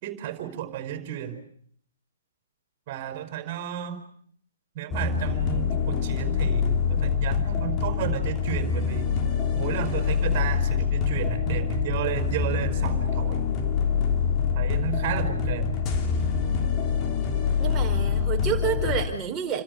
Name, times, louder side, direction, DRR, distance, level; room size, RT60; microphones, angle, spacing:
voice 1, 0.0-1.4 2.9-4.0 4.8-9.1 9.5-13.4 14.5-15.8, right 12 dB, 35° right, 9 dB, 5.2 m, -32 dB
sound 1, 4.9-19.1, left 6 dB, 25° left, 3.3 m, -25 dB
voice 2, 17.6-19.6, right 7 dB, 15° right, 2 dB, 4.9 m, -29 dB
29.5 x 26.0 x 6.7 m, 0.62 s
figure-of-eight pair, 125°, 0 cm